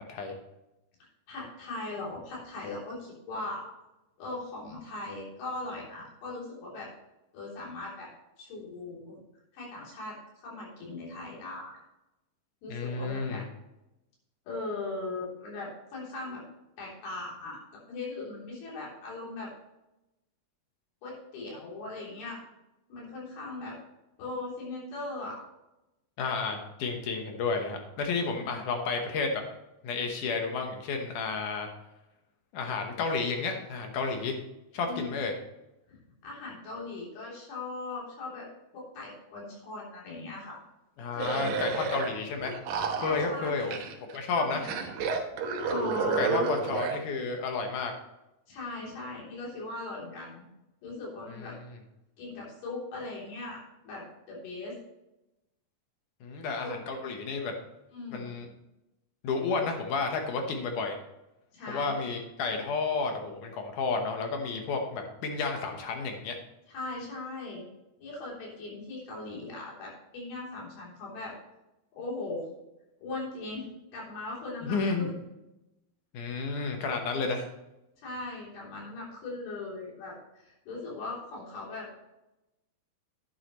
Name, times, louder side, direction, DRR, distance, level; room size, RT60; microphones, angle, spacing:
voice 1, 1.0-3.7 4.2-6.9 7.3-8.1 8.4-9.2 9.5-11.8 12.6-13.4 14.5-16.4 16.8-17.6 17.9-19.5 21.0-22.4 22.9-23.8 24.2-25.4 28.4-28.5 34.9-35.1 35.9-38.5 38.7-40.6 41.1-41.8 43.0-43.7 44.3-44.9 45.6-46.5 48.5-50.4 50.8-51.6 52.2-54.7 56.6-56.7 57.9-58.3 61.5-62.1 66.7-67.7 68.0-71.3 71.9-72.5 73.0-73.7 73.9-75.2 78.0-81.9, left 2 dB, 85° left, -4 dB, 5.3 m, -39 dB
voice 2, 12.7-13.4 26.2-29.4 29.8-31.7 32.5-34.4 34.7-35.4 41.0-42.5 43.0-43.8 44.1-44.6 46.0-47.9 56.2-57.5 58.1-58.5 59.2-61.0 61.7-66.4 74.6-75.1 76.1-77.5, left 4 dB, 65° left, 3 dB, 2.3 m, -31 dB
sound 1, 41.2-42.1 42.4-44.2 44.6-47.0, right 4 dB, 70° right, 2.6 m, -31 dB
11.0 x 9.6 x 3.1 m, 0.95 s
omnidirectional pair, 4.4 m